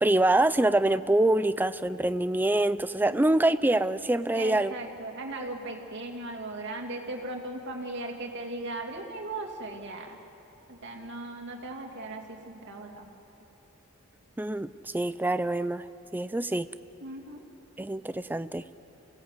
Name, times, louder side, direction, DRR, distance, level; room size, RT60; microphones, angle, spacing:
voice 1, 0.0-4.7 14.4-15.8 16.1-16.7 17.8-18.6, right 1 dB, 10° right, 14 dB, 0.4 m, -25 dB
voice 2, 4.3-10.2 10.7-13.1 17.0-17.4, right 2 dB, 55° right, 2 dB, 2.6 m, -38 dB
28.0 x 17.5 x 8.2 m, 3.0 s
head